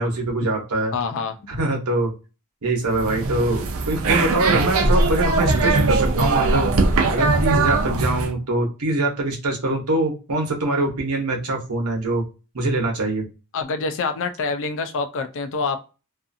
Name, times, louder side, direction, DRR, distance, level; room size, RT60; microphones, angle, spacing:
voice 1, 0.0-0.9 1.5-2.1 2.6-6.7 7.1-12.2 12.5-13.2, right 2 dB, 90° right, 1 dB, 0.9 m, -23 dB
voice 2, 0.9-1.4 13.5-15.8, left 4 dB, 60° left, 9 dB, 0.4 m, -26 dB
sound 1, 2.9-8.3, right 3 dB, 65° right, 0.5 m, -20 dB
2.4 x 2.4 x 2.6 m, 0.32 s
head